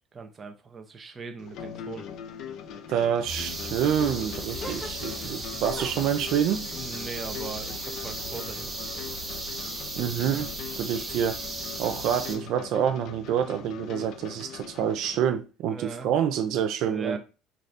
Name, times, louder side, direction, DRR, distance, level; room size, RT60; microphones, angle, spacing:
voice 1, 0.1-2.1 5.5-5.6 6.8-9.0 10.9-11.1 15.7-16.1 16.8-17.2, right 5 dB, 25° right, 0.7 m, -40 dB
sound 1, 1.4-15.3, left 8 dB, 55° left, 0.5 m, -41 dB
voice 2, 2.9-6.7 10.0-10.5 10.8-11.4 11.8-17.2, right 9 dB, 60° right, 0.4 m, -27 dB
sound 2, 3.3-12.4, right 2 dB, 5° right, 1.3 m, -36 dB
sound 3, 4.6-5.4 5.7-8.5 8.8-9.6, equal, 15° left, 1.2 m, -46 dB
4.1 x 2.5 x 3.2 m
cardioid pair, 140°, 0 cm